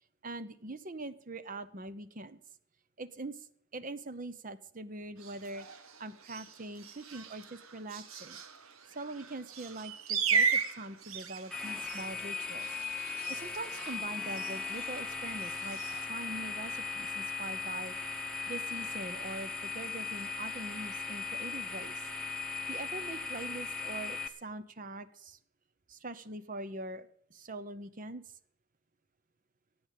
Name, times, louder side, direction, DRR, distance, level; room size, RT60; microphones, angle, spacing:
voice 1, 0.2-2.4 3.0-3.5 3.7-8.4 8.9-12.7 13.0-15.8 16.1-18.0 18.5-22.0 22.7-25.4 25.9-28.2, right 2 dB, 40° right, 14 dB, 0.8 m, -43 dB
sound 1, 5.2-16.1, right 5 dB, 85° right, 1.3 m, -37 dB
sound 2, 11.5-24.3, left 5 dB, 5° left, 1.1 m, -38 dB
14.5 x 8.8 x 8.3 m, 0.69 s
head